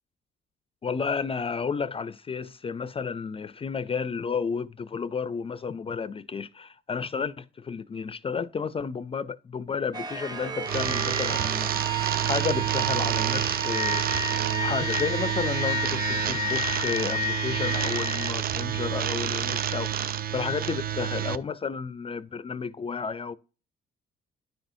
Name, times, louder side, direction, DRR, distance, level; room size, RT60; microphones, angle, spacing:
voice 1, 0.8-11.7 12.2-14.0 14.6-20.1 20.3-23.3, left 5 dB, 30° left, 0.4 m, -32 dB
sound 1, 9.9-18.3, equal, 20° right, 0.7 m, -31 dB
sound 2, 10.6-21.4, right 10 dB, 50° right, 0.4 m, -29 dB
9.9 x 6.0 x 2.6 m
cardioid pair, 90°, 20 cm